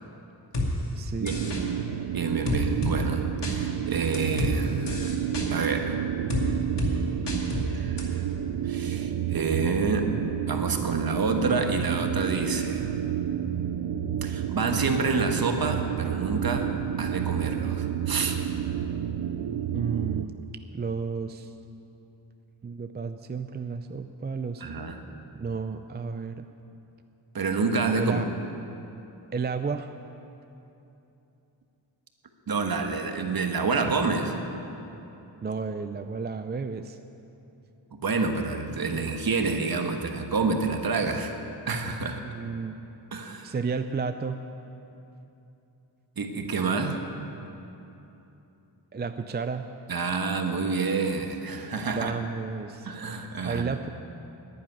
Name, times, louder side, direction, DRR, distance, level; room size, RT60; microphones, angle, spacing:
sound 1, 0.5-0.7 1.3-1.6 2.5-3.0 3.4-3.6 4.1-4.5 4.9-5.5 6.3-6.4 6.8-6.9 7.3-7.6 8.0-8.1, left 2 dB, 65° left, 2.3 m, -29 dB
voice 1, 1.0-1.6 19.7-20.4 20.7-21.5 22.6-24.6 25.4-26.5 28.0-28.3 29.3-29.9 35.4-37.0 42.2-42.8 43.4-44.4 48.9-49.6 51.9-52.9 53.4-53.9, right 5 dB, 25° right, 8 dB, 0.4 m, -32 dB
sound 2, 1.3-20.2, right 10 dB, 80° right, 0.6 m, -30 dB
voice 2, 2.1-5.2 5.5-6.0 7.7-8.2 8.6-10.1 10.5-12.9 14.2-16.7 17.0-18.4 24.6-25.0 27.3-28.2 32.5-34.4 37.9-41.4 41.7-42.2 43.1-43.5 46.2-47.0 49.9-52.1 52.8-53.7, right 4 dB, 50° right, 5 dB, 1.4 m, -28 dB
10.5 x 10.0 x 9.7 m, 2.9 s
wide cardioid pair, 105°, 45 cm